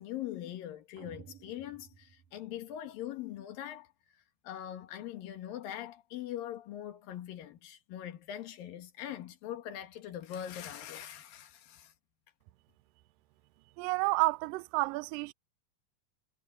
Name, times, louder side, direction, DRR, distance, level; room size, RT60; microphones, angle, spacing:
voice 1, 0.0-3.9 4.4-11.9, left 11 dB, 65° left, 3.1 m, -42 dB
sound 1, 1.0-3.1, right 9 dB, 65° right, 2.6 m, -55 dB
voice 2, 13.8-15.3, right 23 dB, 90° right, 2.0 m, -30 dB
omnidirectional pair, 4.6 m